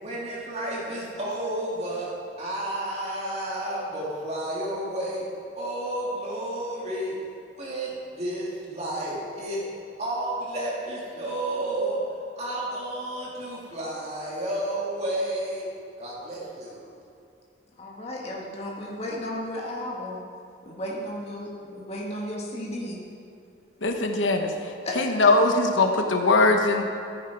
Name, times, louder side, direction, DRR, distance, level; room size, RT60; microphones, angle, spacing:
voice 1, 0.0-2.1 2.4-5.2 5.5-7.1 7.5-9.6 10.0-12.0 12.4-15.7 16.0-16.9, right 1 dB, 35° right, -6 dB, 2.3 m, -31 dB
voice 2, 17.8-20.3 20.7-23.0 24.8-25.0, left 1 dB, 35° left, -3 dB, 1.6 m, -34 dB
voice 3, 23.8-24.5 25.0-26.8, left 2 dB, 90° left, 4 dB, 1.0 m, -21 dB
14.0 x 10.0 x 4.7 m, 2.6 s
head